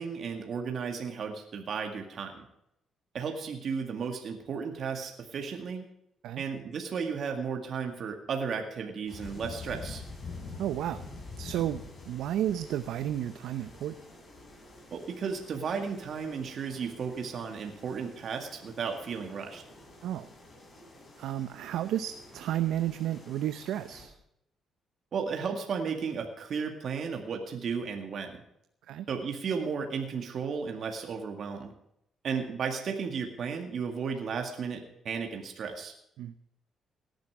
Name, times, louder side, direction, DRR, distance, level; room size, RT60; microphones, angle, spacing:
voice 1, 0.0-2.5 3.1-5.9 6.4-10.0 14.9-19.6 25.1-28.4 29.1-31.7 32.2-35.9, right 6 dB, 60° right, 4 dB, 2.0 m, -34 dB
sound 1, 9.1-24.1, left 3 dB, 40° left, 7.6 m, -47 dB
voice 2, 10.6-11.1 11.4-14.0 20.0-20.3 21.2-24.2 28.9-29.1 36.2-36.3, right 12 dB, 85° right, 11 dB, 0.7 m, -32 dB
18.0 x 10.5 x 4.8 m, 0.78 s
cardioid pair, 90°, 0 cm